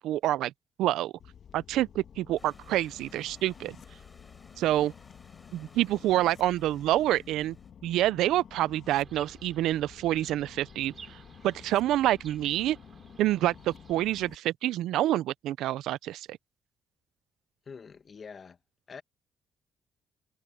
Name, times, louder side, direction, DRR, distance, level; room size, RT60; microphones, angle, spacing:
voice 1, 0.0-0.5 0.8-1.1 1.5-3.8 4.6-4.9 5.5-7.6 7.8-11.2 11.4-12.8 13.2-16.3, right 14 dB, 85° right, 0.5 m, -27 dB
sound 1, 1.2-14.4, left 8 dB, 60° left, 2.2 m, -51 dB
Stream / Liquid, 2.4-7.7, left 3 dB, 20° left, 7.2 m, -59 dB
Chirp tweet, 8.8-14.0, right 6 dB, 45° right, 6.9 m, -54 dB
voice 2, 17.7-18.6 18.9-19.0, left 5 dB, 45° left, 1.5 m, -45 dB
cardioid pair, 90°, 0 cm